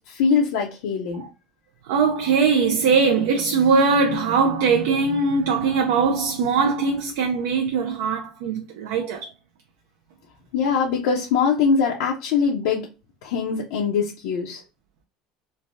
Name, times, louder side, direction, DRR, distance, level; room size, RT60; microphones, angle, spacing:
voice 1, 0.1-1.2 10.5-12.9 13.2-14.6, left 5 dB, 85° left, 0.6 m, -22 dB
voice 2, 1.9-9.3, right 5 dB, 90° right, 0.4 m, -21 dB
3.2 x 2.1 x 2.6 m
cardioid pair, 135°, 0 cm